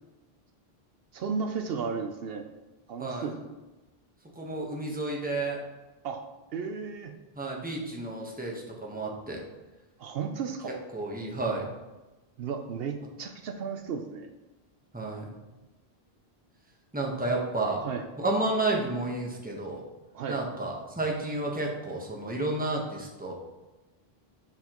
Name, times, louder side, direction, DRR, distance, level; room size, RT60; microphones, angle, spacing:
voice 1, 1.1-2.5 2.9-3.6 6.0-6.2 6.5-7.1 10.0-10.8 12.4-14.3 17.8-18.0 20.1-20.4, right 5 dB, 70° right, 5 dB, 0.8 m, -34 dB
voice 2, 4.4-5.6 7.4-9.4 10.6-11.7 14.9-15.2 16.9-17.9 18.2-19.8 20.3-23.3, right 2 dB, 10° right, -1 dB, 1.0 m, -31 dB
7.2 x 5.9 x 2.9 m, 1.1 s
omnidirectional pair, 1.0 m